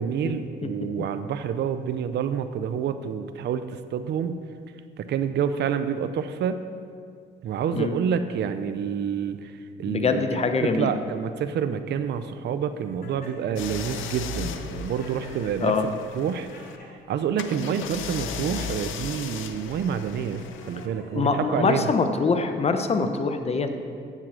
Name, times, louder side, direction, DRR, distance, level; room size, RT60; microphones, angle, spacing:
voice 1, 0.0-4.4 5.0-6.6 7.4-9.5 9.8-16.5 17.1-21.9, right 7 dB, 60° right, 10 dB, 0.5 m, -28 dB
voice 2, 9.9-10.9 15.6-15.8 21.1-23.8, left 4 dB, 30° left, 7 dB, 0.8 m, -24 dB
Laughter, 13.0-13.7 14.6-16.9 17.5-18.2 19.0-19.3 20.0-22.2, left 2 dB, 50° left, 2.7 m, -48 dB
sound 1, 13.6-16.8 17.4-20.9, left 6 dB, 80° left, 0.7 m, -36 dB
7.4 x 7.4 x 6.3 m, 2.3 s
cardioid pair, 90°, 20 cm